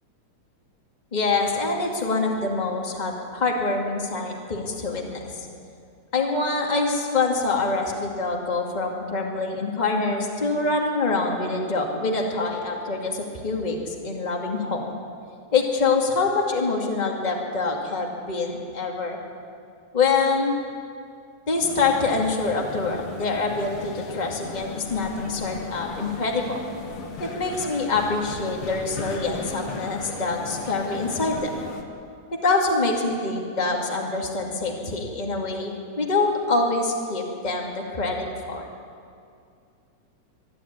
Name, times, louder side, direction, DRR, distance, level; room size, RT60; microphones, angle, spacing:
voice 1, 1.1-5.5 6.1-15.0 15.5-19.2 19.9-20.6 21.5-26.6 27.2-31.5 32.4-38.7, left 3 dB, 15° left, 0 dB, 2.0 m, -25 dB
sound 1, 21.6-31.8, left 4 dB, 50° left, 2.2 m, -36 dB
24.5 x 11.5 x 9.5 m, 2.4 s
omnidirectional pair, 3.4 m